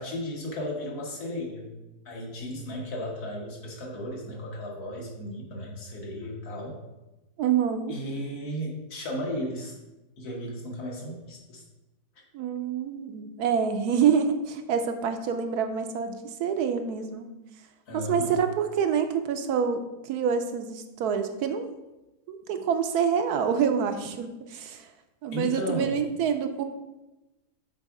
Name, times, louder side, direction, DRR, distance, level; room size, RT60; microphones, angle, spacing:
voice 1, 0.0-1.7 2.1-6.8 7.9-9.8 10.2-11.6 17.9-18.4 25.3-26.0, equal, 70° left, -1 dB, 1.9 m, -35 dB
voice 2, 7.4-7.9 12.3-17.3 17.9-21.7 22.3-24.9 25.2-26.6, right 7 dB, 75° right, 7 dB, 1.1 m, -27 dB
7.5 x 3.5 x 4.7 m, 1.0 s
omnidirectional pair, 1.7 m